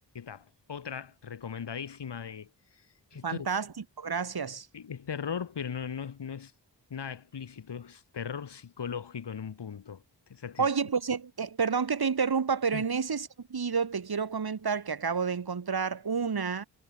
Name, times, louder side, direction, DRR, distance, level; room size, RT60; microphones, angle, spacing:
voice 1, 0.1-2.5 3.1-3.5 4.7-6.5 6.9-10.0 10.3-10.7 12.7-12.8, left 7 dB, 80° left, 4.9 m, -38 dB
voice 2, 3.2-3.7 4.0-4.7 10.6-16.7, right 5 dB, 60° right, 5.1 m, -29 dB
wide cardioid pair, 80°, 41 cm